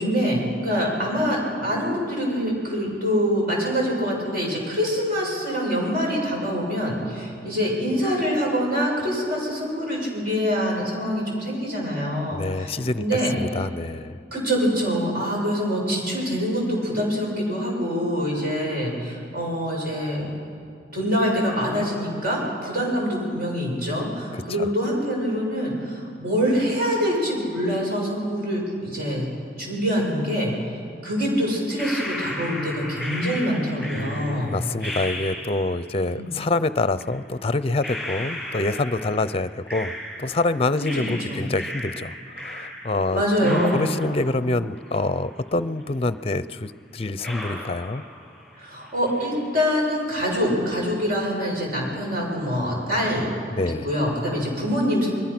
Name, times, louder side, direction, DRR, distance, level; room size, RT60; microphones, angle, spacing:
voice 1, 0.0-13.3 14.3-20.3 20.9-29.3 29.6-30.5 31.0-34.5 36.1-36.3 40.9-41.5 43.1-44.0 48.6-53.3 53.8-55.1, equal, 55° right, -2 dB, 7.8 m, -25 dB
voice 2, 12.3-13.0 13.3-14.2 24.3-24.7 33.9-39.9 40.2-48.0 53.5-53.9, left 2 dB, 35° left, 14 dB, 0.6 m, -26 dB
sound 1, 31.8-35.9 37.0-37.1 37.8-40.5 40.8-43.1 43.4-45.5 45.8-45.9 46.6-46.7 47.2-48.5 48.8-49.4, left 1 dB, 5° right, 7.9 m, -35 dB
29.0 x 22.0 x 6.1 m, 2.3 s
head